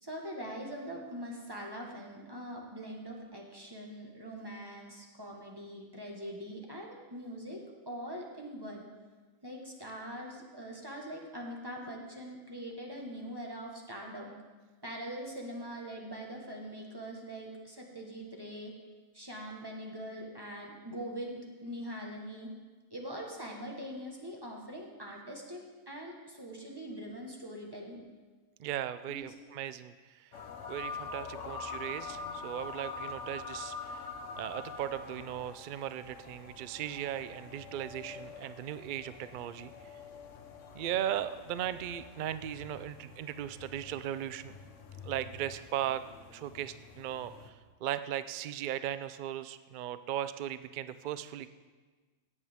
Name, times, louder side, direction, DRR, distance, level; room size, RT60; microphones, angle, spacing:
voice 1, 0.0-8.9 9.4-14.3 14.8-18.7 19.1-22.5 22.9-28.0 29.1-29.3, equal, 20° right, -1 dB, 1.4 m, -43 dB
voice 2, 28.6-29.9 30.7-34.0 34.4-39.7 40.7-44.5 45.0-46.0 46.3-47.5 47.8-51.5, right 11 dB, 85° right, 13 dB, 0.4 m, -37 dB
sound 1, 30.3-47.5, left 4 dB, 65° left, 1.2 m, -45 dB
16.0 x 8.4 x 3.6 m, 1.3 s
omnidirectional pair, 1.4 m